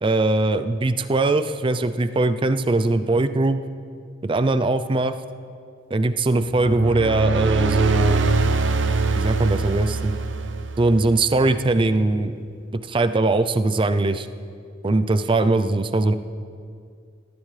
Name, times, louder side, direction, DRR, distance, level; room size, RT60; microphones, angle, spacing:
voice 1, 0.0-3.6 4.2-5.2 5.9-8.3 9.2-10.1 10.8-12.4 12.9-14.3 14.8-16.1, right 2 dB, 25° right, 11 dB, 0.4 m, -21 dB
sound 1, 6.4-11.1, right 3 dB, 70° right, 0.7 m, -22 dB
17.5 x 14.0 x 3.3 m, 2.3 s
head